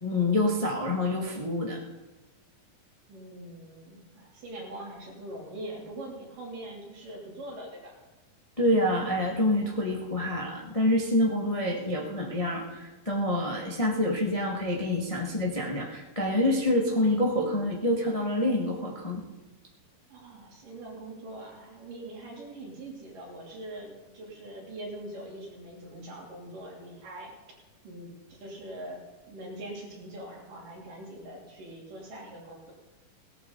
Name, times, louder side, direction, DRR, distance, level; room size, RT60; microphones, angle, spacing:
voice 1, 0.0-1.8 8.6-19.2, left 1 dB, 25° left, -2 dB, 0.8 m, -27 dB
voice 2, 3.1-8.0 20.1-27.3 27.8-29.0 29.3-32.7, right 1 dB, 70° right, -3 dB, 4.7 m, -42 dB
18.0 x 12.5 x 4.0 m, 1.1 s
omnidirectional pair, 3.9 m